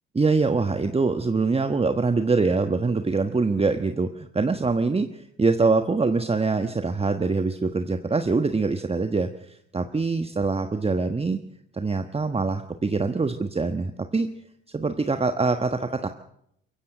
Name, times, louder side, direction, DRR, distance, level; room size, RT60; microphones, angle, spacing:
voice 1, 0.1-11.4 11.7-14.3 14.7-16.1, right 3 dB, 20° right, 8 dB, 1.3 m, -24 dB
23.0 x 15.0 x 7.8 m, 0.76 s
hypercardioid pair, 55°, 29 cm